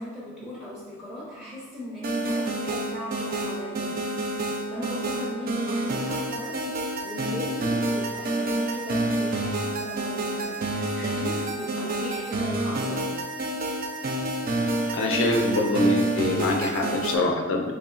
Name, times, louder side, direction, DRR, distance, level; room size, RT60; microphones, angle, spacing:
voice 1, 0.0-3.9 4.7-13.1, left 1 dB, ahead, -7 dB, 0.7 m, -37 dB
sound 1, 2.0-17.2, right 2 dB, 45° right, 0.4 m, -28 dB
voice 2, 14.9-17.7, left 2 dB, 60° left, 1 dB, 0.4 m, -24 dB
4.1 x 3.1 x 2.4 m, 1.3 s
head